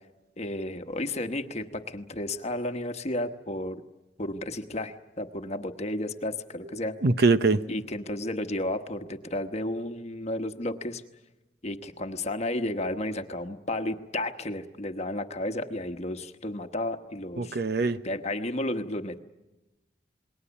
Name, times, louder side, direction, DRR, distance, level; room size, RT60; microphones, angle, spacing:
voice 1, 0.4-3.8 4.2-7.0 7.7-11.0 11.6-17.6 18.0-19.2, left 1 dB, 35° left, 7 dB, 1.1 m, -32 dB
voice 2, 7.0-7.6 17.4-18.0, right 3 dB, 60° right, 11 dB, 0.8 m, -22 dB
28.0 x 20.5 x 7.0 m, 1.0 s
head